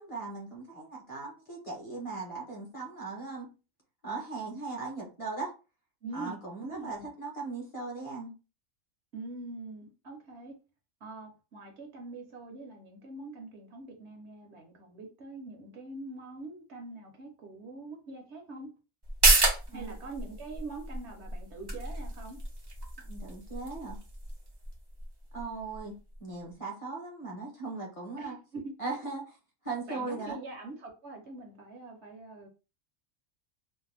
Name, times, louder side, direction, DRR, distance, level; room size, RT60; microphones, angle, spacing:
voice 1, 0.0-3.5 4.0-5.5 6.1-8.3 19.7-20.0 23.0-24.0 25.3-28.4 28.8-29.2 29.6-30.4, right 3 dB, 30° left, 0.8 m, -38 dB
voice 2, 6.0-7.1 9.1-10.6 11.0-18.7 19.7-22.4 28.2-28.7 29.9-32.5, right 3 dB, 60° right, 1.0 m, -44 dB
sound 1, 19.0-26.2 26.5-26.6, right 2 dB, 40° right, 0.3 m, -31 dB
2.6 x 2.1 x 3.2 m
omnidirectional pair, 1.4 m